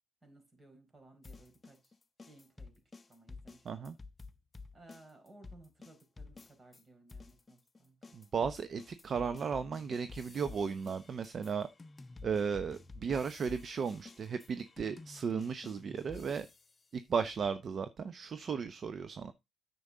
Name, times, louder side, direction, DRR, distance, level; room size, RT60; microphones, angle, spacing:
voice 1, 0.2-2.0 2.2-2.7 3.1-3.9 4.7-8.0, right 2 dB, 30° right, 4.3 m, -59 dB
sound 1, 1.2-6.8 7.1-16.8, left 3 dB, 25° left, 0.9 m, -51 dB
voice 2, 3.6-4.0 8.1-11.7 12.2-16.5 16.9-19.3, right 6 dB, 50° right, 0.8 m, -35 dB
9.6 x 6.9 x 3.8 m
cardioid pair, 90°, 0 cm